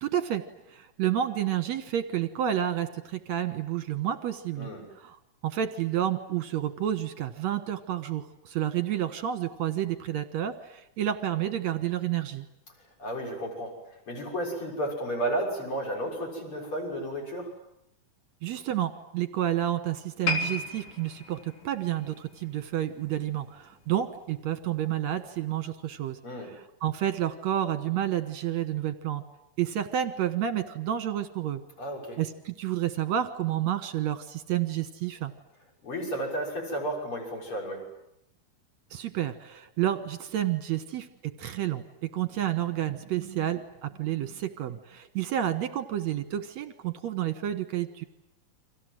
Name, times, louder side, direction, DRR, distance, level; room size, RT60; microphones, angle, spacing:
voice 1, 0.0-4.7 5.0-5.2 5.4-12.5 18.4-29.2 29.6-31.6 32.2-35.3 38.9-48.0, right 11 dB, 65° right, 10 dB, 2.2 m, -30 dB
voice 2, 13.0-17.5 26.2-26.5 31.8-32.2 35.8-37.8, right 1 dB, 35° left, 2 dB, 7.3 m, -33 dB
sound 1, 20.2-23.5 23.8-24.1 24.8-24.9, left 3 dB, 60° left, 4.8 m, -35 dB
30.0 x 25.0 x 7.7 m, 0.81 s
omnidirectional pair, 4.1 m